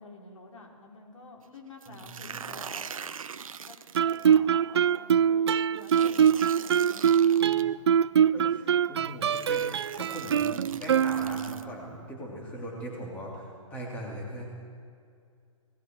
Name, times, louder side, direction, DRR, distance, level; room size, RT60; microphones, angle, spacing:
voice 1, 0.0-2.9 3.6-7.7, left 2 dB, 70° left, 1 dB, 4.5 m, -49 dB
sound 1, 1.8-4.4 5.8-7.6 8.6-8.7 9.2-11.6, right 7 dB, 85° right, 1.0 m, -42 dB
voice 2, 1.9-2.4 8.3-9.7 9.9-14.4, equal, 10° left, -2 dB, 3.1 m, -40 dB
Guitar, 3.9-11.7, right 8 dB, 55° right, 0.4 m, -23 dB
29.5 x 19.0 x 4.7 m, 2.3 s
hypercardioid pair, 175°, 17 cm